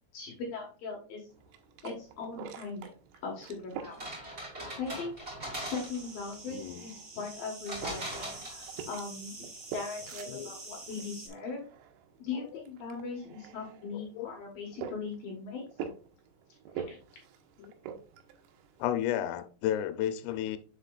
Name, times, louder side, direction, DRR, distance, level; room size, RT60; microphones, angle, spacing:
voice 1, 0.1-1.3 1.8-2.9 3.2-4.2 4.8-5.3 5.6-11.6 12.2-15.6 16.7-17.0, left 4 dB, 65° left, 2.6 m, -40 dB
sound 1, 1.3-19.1, right 7 dB, 80° right, 3.3 m, -47 dB
sound 2, 3.8-6.2 7.7-9.0, right 1 dB, 20° right, 2.2 m, -40 dB
sound 3, 5.5-11.3, right 3 dB, 35° right, 1.9 m, -47 dB
voice 2, 6.5-6.8 10.3-10.5 13.9-14.3 17.6-17.7 18.8-20.6, left 11 dB, 85° left, 3.2 m, -32 dB
7.4 x 6.7 x 2.4 m
omnidirectional pair, 5.7 m